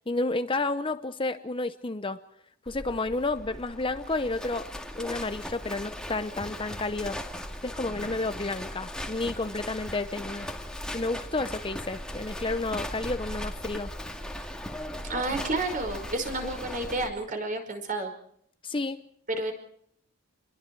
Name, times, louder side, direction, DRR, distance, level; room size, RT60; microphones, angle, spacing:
voice 1, 0.1-2.2 2.7-4.7 5.0-7.2 7.6-10.5 10.9-13.9 16.4-16.5 18.6-19.0, left 2 dB, 25° left, 10 dB, 0.8 m, -31 dB
Livestock farm animals working animals, 2.7-17.1, left 1 dB, 5° left, 2.1 m, -38 dB
voice 2, 15.0-18.1 19.3-19.5, right 2 dB, 35° right, 5 dB, 5.2 m, -30 dB
29.5 x 22.0 x 4.7 m, 0.67 s
head